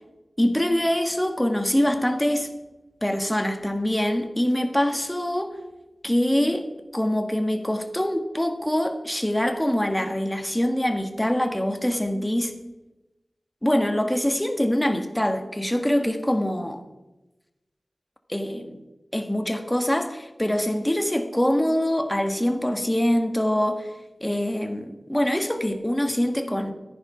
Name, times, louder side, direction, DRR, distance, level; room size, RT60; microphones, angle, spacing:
voice 1, 0.4-2.5 3.0-5.5 6.0-12.5 13.6-16.8 18.3-18.8 19.1-23.9 24.2-26.7, equal, 10° left, 1.6 m, -24 dB
14.5 x 10.5 x 5.7 m
wide cardioid pair, 75°, 0 cm